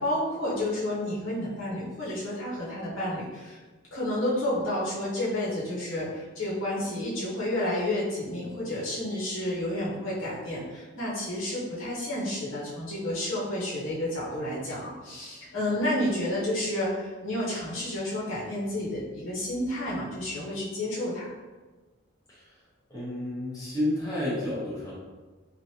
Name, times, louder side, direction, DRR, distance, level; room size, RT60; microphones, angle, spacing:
voice 1, 0.0-3.6 3.9-21.3, left 1 dB, 85° left, -7 dB, 1.1 m, -30 dB
voice 2, 22.9-24.9, left 1 dB, 20° left, -9 dB, 0.9 m, -30 dB
3.0 x 2.5 x 2.8 m, 1.3 s
head